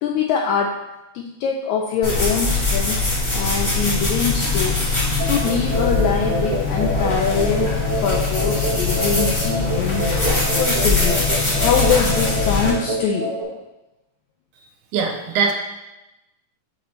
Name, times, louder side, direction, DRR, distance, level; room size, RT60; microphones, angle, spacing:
voice 1, 0.0-0.8 1.1-3.0 3.3-5.0 5.3-7.7 8.0-10.0 10.5-11.2 11.6-13.4, left 6 dB, 85° left, 1 dB, 1.6 m, -23 dB
sound 1, 2.0-12.7, left 3 dB, 35° left, 0.4 m, -22 dB
sound 2, 3.8-12.8, left 7 dB, 65° left, 1.8 m, -30 dB
sound 3, 5.2-13.4, right 1 dB, 60° right, 1.6 m, -27 dB
voice 2, 14.9-15.5, right 5 dB, 80° right, 4 dB, 2.0 m, -21 dB
7.4 x 5.0 x 3.1 m, 0.99 s
omnidirectional pair, 3.7 m